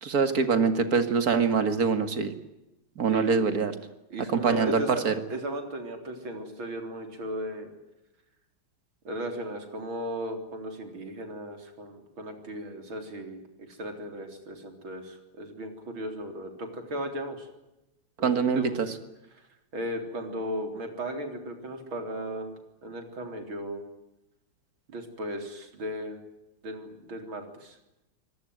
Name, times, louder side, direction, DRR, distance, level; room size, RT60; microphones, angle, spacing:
voice 1, 0.0-2.3 3.0-3.7 4.3-5.1 18.2-18.9, right 5 dB, 45° right, 9 dB, 2.4 m, -24 dB
voice 2, 3.1-3.7 4.1-7.7 9.0-13.4 13.7-17.5 18.2-18.9 19.7-22.5 22.8-23.8 24.9-26.2 26.6-27.8, right 1 dB, 70° right, 5 dB, 4.6 m, -36 dB
25.5 x 18.5 x 9.4 m, 0.94 s
omnidirectional pair, 2.3 m